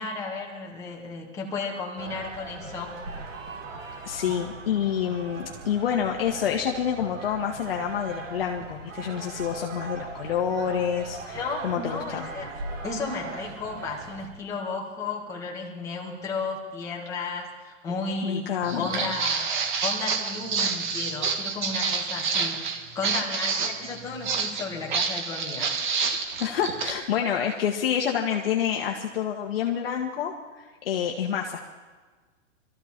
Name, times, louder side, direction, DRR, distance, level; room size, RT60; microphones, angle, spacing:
voice 1, 0.0-3.3 11.3-12.5 12.8-19.5 19.8-25.7, left 3 dB, 10° left, -2 dB, 1.7 m, -34 dB
sound 1, 2.0-14.3, right 3 dB, 80° right, 2.9 m, -40 dB
voice 2, 4.0-12.3 18.2-18.9 26.4-31.6, left 8 dB, 50° left, 1 dB, 1.4 m, -28 dB
Walk footsteps, 18.6-26.9, right 5 dB, 40° right, 1.6 m, -28 dB
23.0 x 14.0 x 4.4 m, 1.4 s
hypercardioid pair, 175°, 38 cm